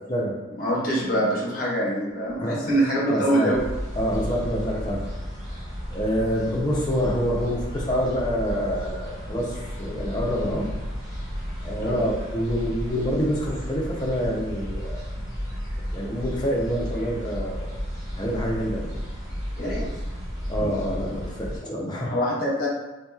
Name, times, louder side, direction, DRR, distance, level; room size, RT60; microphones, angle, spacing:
voice 1, 0.6-3.6 11.8-12.0 19.6-19.9 22.1-22.7, right 1 dB, 40° left, -6 dB, 1.0 m, -24 dB
voice 2, 3.1-3.5 4.0-5.1 5.9-9.5 9.8-10.7 11.6-15.0 15.9-17.7 18.2-18.9 20.5-22.1, equal, 20° left, -3 dB, 0.5 m, -26 dB
sound 1, 3.5-21.6, equal, 50° right, 1.4 m, -33 dB
3.6 x 2.8 x 2.3 m, 1.1 s
head